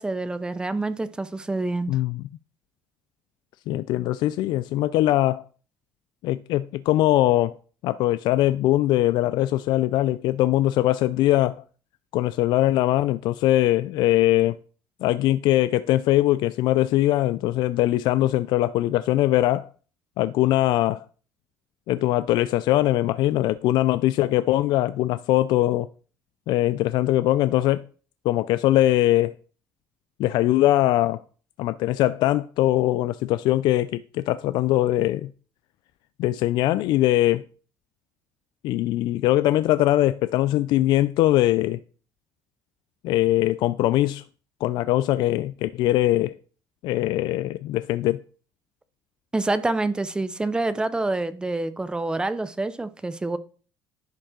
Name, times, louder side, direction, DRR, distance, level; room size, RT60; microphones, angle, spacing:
voice 1, 0.0-1.9 49.3-53.4, right 2 dB, 10° right, 0.6 m, -27 dB
voice 2, 1.9-2.2 3.7-5.4 6.2-7.6 7.8-11.6 12.1-14.6 15.0-19.7 20.2-21.0 21.9-25.9 26.5-27.8 28.2-29.3 30.2-31.2 31.6-35.3 36.2-37.4 38.6-41.8 43.0-44.2 44.6-46.4 46.8-48.2, left 15 dB, 70° left, 0.3 m, -21 dB
10.5 x 5.3 x 3.7 m
cardioid pair, 140°, 8 cm